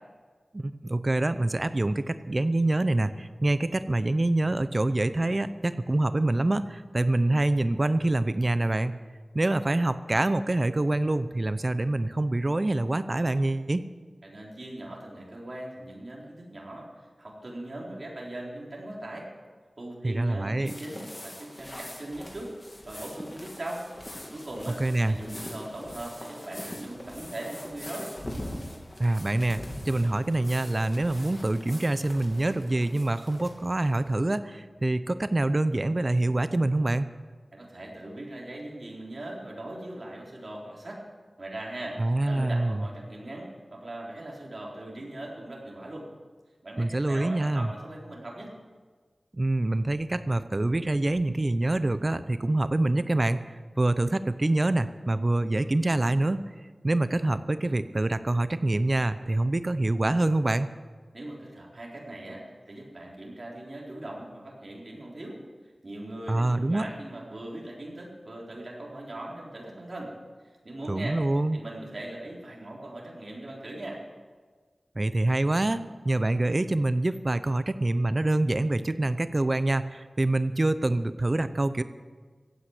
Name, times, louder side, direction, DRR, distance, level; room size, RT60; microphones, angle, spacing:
voice 1, 0.5-8.9 9.3-13.8 20.0-20.7 24.8-25.2 29.0-37.1 42.0-42.8 46.8-47.7 49.3-56.4 56.8-60.7 66.3-66.9 70.9-71.6 75.0-81.8, right 2 dB, 35° right, 12 dB, 0.6 m, -26 dB
voice 2, 14.2-16.9 17.2-19.3 19.8-22.5 22.9-23.9 24.3-24.8 25.0-28.2 37.5-41.0 41.4-46.1 46.6-48.5 61.1-65.4 65.8-70.1 70.6-71.2 71.5-74.0, right 1 dB, 50° right, -3 dB, 4.1 m, -40 dB
sound 1, 20.7-34.3, left 1 dB, 30° left, 2.6 m, -42 dB
15.5 x 9.0 x 8.2 m, 1.5 s
wide cardioid pair, 70°, 0 cm